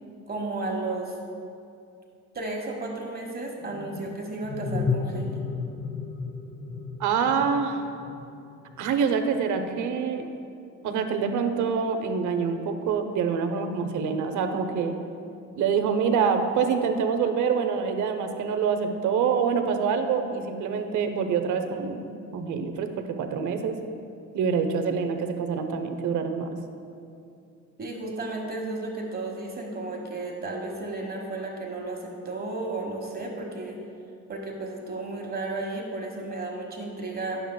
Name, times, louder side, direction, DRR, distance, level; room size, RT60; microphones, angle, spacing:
voice 1, 0.3-1.2 2.3-5.4 27.8-33.8 34.3-37.4, right 2 dB, 30° right, -1 dB, 1.2 m, -33 dB
sound 1, 3.6-9.0, left 5 dB, 25° left, 0.5 m, -33 dB
voice 2, 7.0-7.8 8.8-10.3 10.8-14.9 15.5-23.8 24.3-26.6, right 6 dB, 75° right, 6 dB, 0.7 m, -26 dB
10.0 x 6.6 x 2.2 m, 2.5 s
cardioid pair, 90°, 30 cm